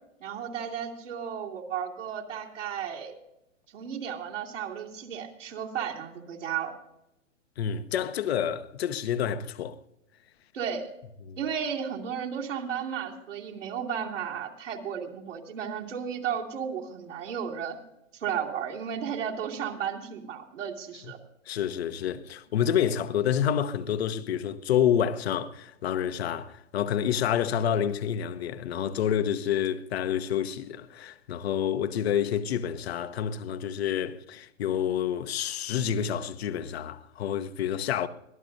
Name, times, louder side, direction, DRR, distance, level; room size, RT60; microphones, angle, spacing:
voice 1, 0.2-3.2 3.7-6.7 10.5-10.9 11.4-17.8 18.1-21.2, right 8 dB, 70° right, 2.9 m, -34 dB
voice 2, 7.6-9.8 11.3-11.4 21.5-38.1, left 9 dB, 55° left, 0.9 m, -28 dB
23.5 x 18.0 x 2.6 m
figure-of-eight pair, 115°, 38 cm